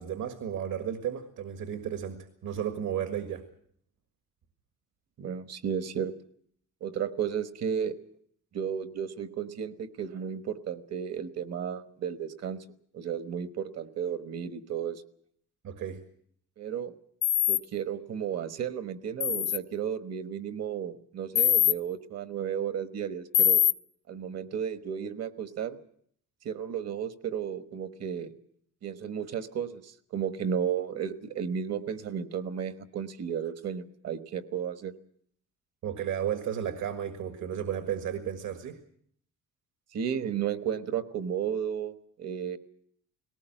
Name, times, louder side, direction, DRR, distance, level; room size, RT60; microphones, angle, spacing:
voice 1, 0.0-3.4 15.6-16.0 35.8-38.8, right 9 dB, 70° right, 8 dB, 1.8 m, -33 dB
voice 2, 5.2-6.1 6.8-7.9 8.5-12.6 12.9-15.0 16.6-16.9 17.5-23.6 24.1-25.8 26.4-28.3 28.8-34.9 39.9-42.6, right 8 dB, 55° right, 11 dB, 1.3 m, -33 dB
sound 1, 17.2-17.6 19.2-19.6 21.4-21.7 23.3-23.7, left 10 dB, 55° left, 0.9 m, -22 dB
19.0 x 18.0 x 9.0 m, 0.64 s
cardioid pair, 170°, 31 cm